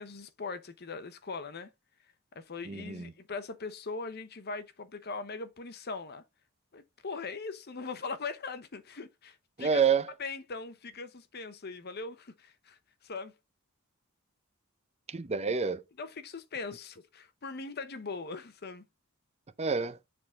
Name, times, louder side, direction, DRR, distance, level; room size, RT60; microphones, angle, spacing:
voice 1, 0.0-1.7 2.3-6.2 6.7-9.8 10.2-13.3 16.0-18.8, left 4 dB, 50° left, 0.8 m, -40 dB
voice 2, 2.7-3.1 9.6-10.1 15.1-15.8 19.6-20.0, right 6 dB, 30° right, 0.6 m, -28 dB
6.8 x 3.8 x 3.7 m
head